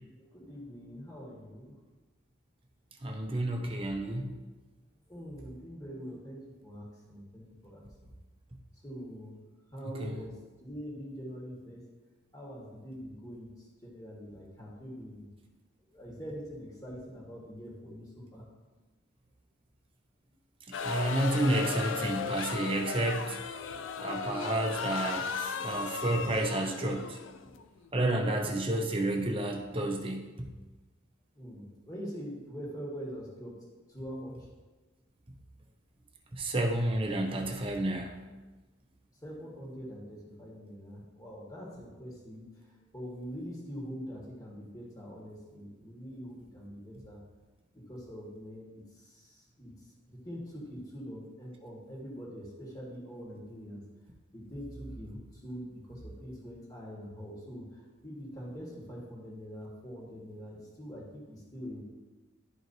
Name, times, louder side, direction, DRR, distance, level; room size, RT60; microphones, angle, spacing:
voice 1, 0.2-1.8 5.1-8.1 8.8-9.4 9.7-11.8 12.3-15.3 15.9-18.5 28.4-28.6 31.3-33.6 33.9-34.4 39.2-42.5 42.9-47.2 47.7-49.7 50.1-53.8 54.3-61.8, equal, 20° left, -4 dB, 1.5 m, -44 dB
voice 2, 3.0-4.3 10.0-10.2 20.7-23.4 24.0-27.2 27.9-30.3 36.3-38.1, right 1 dB, 30° right, 1 dB, 0.8 m, -30 dB
sound 1, 20.7-27.9, left 5 dB, 85° left, 0.4 m, -36 dB
11.5 x 4.5 x 2.7 m, 1.2 s
head